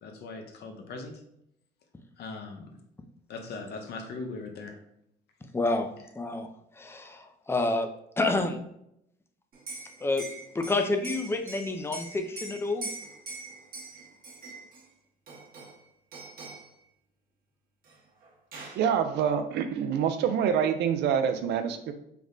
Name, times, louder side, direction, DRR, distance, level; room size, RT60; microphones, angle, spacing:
voice 1, 0.0-1.2 2.2-2.8 3.3-4.8, left 3 dB, 60° left, 5 dB, 0.7 m, -40 dB
voice 2, 5.5-5.9 6.2-6.5 6.8-7.9 8.2-8.6 10.0-10.2 10.5-12.9, left 2 dB, 15° left, 6 dB, 0.4 m, -28 dB
Liquid, 9.5-14.8 15.3-15.8 16.1-16.7 17.9-18.0 18.2-18.9, right 3 dB, 50° right, 1.0 m, -42 dB
voice 3, 18.8-21.9, right 8 dB, 65° right, 8 dB, 0.4 m, -26 dB
3.4 x 2.1 x 3.7 m, 0.76 s
cardioid pair, 90°, 19 cm